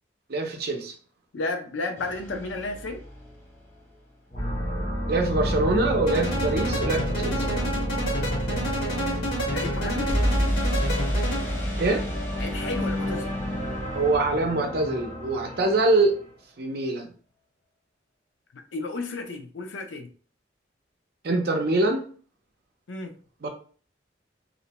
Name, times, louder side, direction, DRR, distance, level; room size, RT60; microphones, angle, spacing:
voice 1, 0.3-0.9 5.1-7.5 11.8-12.0 13.9-16.1 16.6-17.1 21.2-22.1 23.4-23.5, right 2 dB, 55° right, 0.5 m, -24 dB
voice 2, 1.3-3.0 9.5-10.2 12.4-13.3 18.5-20.1 22.9-23.1, left 3 dB, 80° left, 0.5 m, -33 dB
sound 1, 2.0-4.0 10.1-15.9, equal, 15° left, 0.6 m, -31 dB
sound 2, 4.3-16.2, equal, 35° left, 1.1 m, -30 dB
sound 3, 6.1-11.7, right 1 dB, 60° left, 1.5 m, -30 dB
2.5 x 2.1 x 2.8 m
head